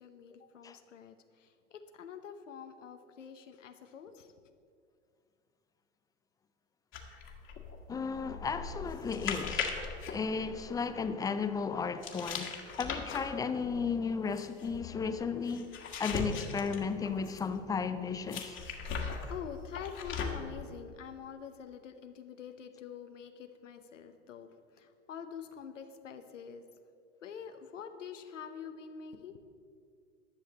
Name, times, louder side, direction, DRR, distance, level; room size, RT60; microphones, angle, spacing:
voice 1, 0.0-4.5 18.8-26.6 27.2-29.4, left 7 dB, 80° left, 0.9 m, -46 dB
sound 1, 6.9-11.0 12.0-17.6 18.3-20.6, left 5 dB, 30° left, 1.6 m, -39 dB
voice 2, 7.9-9.8 10.1-15.7 16.0-18.6, left 5 dB, 10° left, 0.4 m, -34 dB
11.5 x 6.5 x 7.7 m
hypercardioid pair, 95°, 37 cm